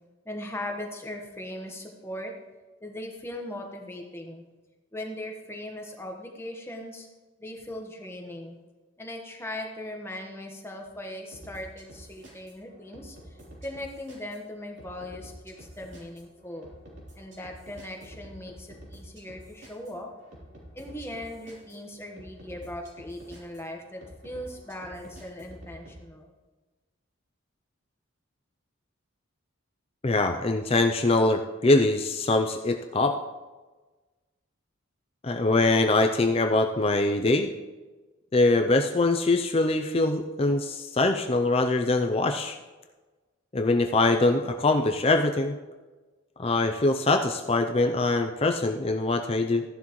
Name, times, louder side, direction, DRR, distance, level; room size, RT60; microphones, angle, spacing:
voice 1, 0.2-2.3 2.8-4.4 4.9-7.1 7.4-8.6 9.0-13.2 13.6-16.7 17.1-20.1 20.7-26.3, left 1 dB, 10° left, 1 dB, 1.2 m, -39 dB
sound 1, 11.3-26.0, equal, 60° right, 3.3 m, -48 dB
voice 2, 30.0-33.2 35.2-37.5 38.3-42.6 43.5-45.6 46.4-49.6, left 2 dB, 30° left, 5 dB, 0.4 m, -23 dB
14.5 x 11.0 x 3.1 m, 1.3 s
head